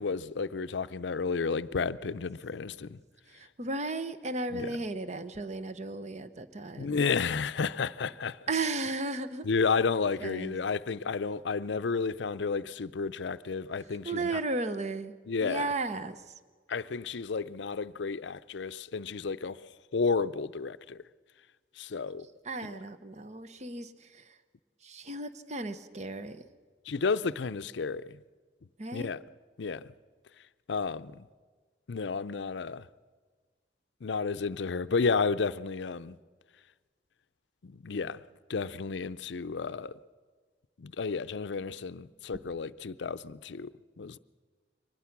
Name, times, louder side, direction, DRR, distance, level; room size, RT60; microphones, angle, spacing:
voice 1, 0.0-3.0 4.5-4.7 6.8-8.4 9.4-14.4 15.3-15.7 16.7-21.0 21.8-22.3 22.6-22.7 26.9-28.2 28.9-29.2 29.6-29.9 30.7-31.2 31.9-32.9 34.0-36.2 37.6-38.2 38.5-39.9 40.8-43.7 44.0-44.2, left 4 dB, 70° left, 0.5 m, -32 dB
voice 2, 3.3-7.0 8.5-9.5 10.2-10.6 14.0-15.1 15.4-16.2 22.5-24.2 24.8-26.4 28.8-29.1 42.3-42.4, right 3 dB, 40° right, 0.9 m, -35 dB
23.5 x 20.0 x 6.0 m
head